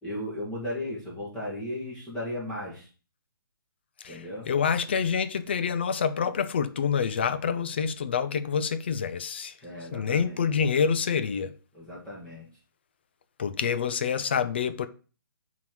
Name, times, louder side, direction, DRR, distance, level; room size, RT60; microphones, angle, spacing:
voice 1, 0.0-2.9 4.1-4.5 9.6-10.4 11.7-12.5, left 1 dB, 5° left, 1.5 m, -36 dB
voice 2, 4.0-9.5 9.9-11.5 13.4-14.9, left 6 dB, 30° left, 0.4 m, -27 dB
5.7 x 3.8 x 4.5 m
hypercardioid pair, 170°, 12 cm